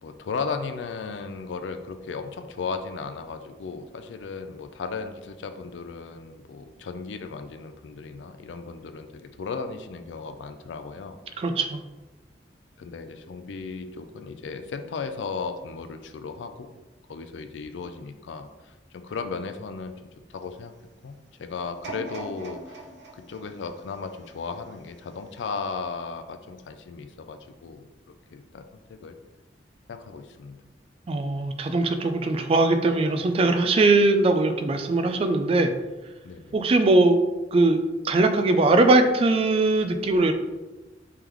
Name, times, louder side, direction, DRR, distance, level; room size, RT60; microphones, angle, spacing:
voice 1, 0.0-11.2 12.8-16.7 17.1-20.7 21.0-21.1 21.4-22.8 23.1-29.2 29.9-30.6 36.2-36.6, left 5 dB, 90° left, 8 dB, 0.4 m, -36 dB
voice 2, 11.4-11.8 31.1-35.7 36.5-37.2 37.5-40.3, right 2 dB, 35° right, 7 dB, 0.3 m, -21 dB
sound 1, 21.8-24.9 25.5-25.6, right 2 dB, 70° right, 0.7 m, -41 dB
3.6 x 3.4 x 3.0 m, 1.1 s
head